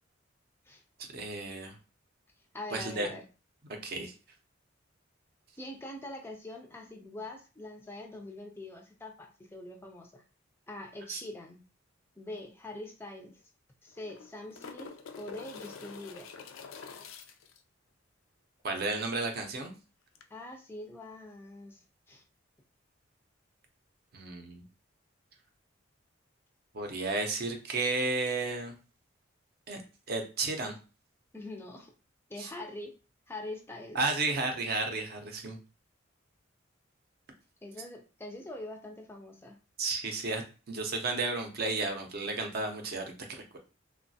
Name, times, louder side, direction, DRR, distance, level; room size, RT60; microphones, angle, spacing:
voice 1, 1.0-1.8 2.7-3.1 3.8-4.1 11.1-11.2 18.6-19.7 24.1-24.6 26.7-28.7 29.7-29.8 30.1-30.7 32.4-32.5 33.9-35.6 39.8-40.4 40.7-43.6, right 3 dB, 50° right, 4 dB, 0.5 m, -33 dB
voice 2, 2.5-3.2 5.6-10.2 10.7-11.6 12.2-13.4 13.8-14.9 15.2-16.3 20.3-22.2 31.3-31.9 32.3-32.9 33.3-34.0 37.6-39.6, left 1 dB, 10° left, 2 dB, 0.3 m, -44 dB
sound 1, 12.4-12.5 12.7-12.8 13.9-17.6 20.2-20.3, left 5 dB, 90° left, 0.4 m, -46 dB
3.0 x 2.2 x 2.6 m, 0.33 s
head